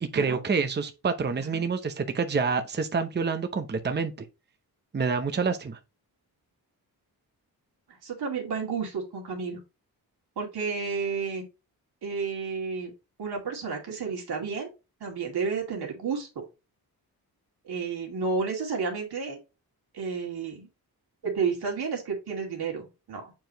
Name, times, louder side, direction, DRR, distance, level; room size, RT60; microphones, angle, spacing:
voice 1, 0.0-4.1 4.9-5.8, right 5 dB, 25° right, 0.7 m, -27 dB
voice 2, 8.0-9.6 10.4-11.5 12.0-12.9 13.2-14.7 15.0-16.4 17.6-19.4 19.9-20.7 21.2-23.3, right 5 dB, 90° right, 2.4 m, -31 dB
7.3 x 4.6 x 2.9 m
wide cardioid pair, 110°, 38 cm